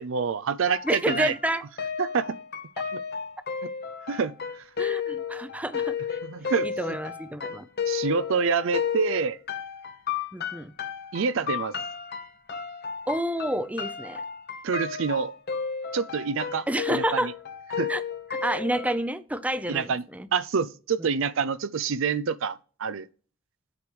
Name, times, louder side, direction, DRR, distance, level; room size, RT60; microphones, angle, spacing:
voice 1, 0.0-1.3 2.0-2.4 2.9-3.0 3.6-3.7 4.1-4.3 6.2-6.7 7.9-9.4 11.1-11.8 14.6-15.3 15.9-17.3 17.8-17.9 19.7-20.0 20.3-23.1, right 5 dB, 65° right, 0.5 m, -27 dB
sound 1, 0.6-18.9, left 7 dB, 50° left, 1.0 m, -33 dB
voice 2, 0.8-1.6 4.8-6.2 6.6-7.6 10.3-10.7 13.1-14.2 16.7-17.3 17.9-18.0 18.4-20.3 21.0-21.1, right 1 dB, 5° right, 0.6 m, -29 dB
8.3 x 5.1 x 4.6 m
head